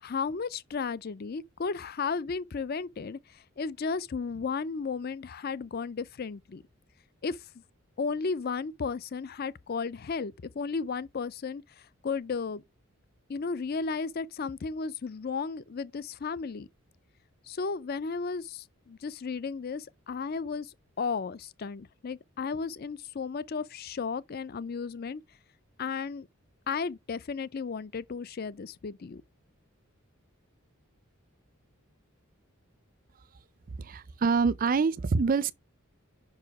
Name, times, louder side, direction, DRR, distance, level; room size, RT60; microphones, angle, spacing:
voice 1, 0.0-6.6 7.2-7.4 8.0-11.6 12.0-12.6 13.3-16.7 17.5-25.2 25.8-26.3 26.7-29.2, left 5 dB, 45° left, 0.4 m, -34 dB
voice 2, 33.8-35.5, right 4 dB, 40° right, 0.4 m, -26 dB
5.7 x 4.9 x 4.7 m
head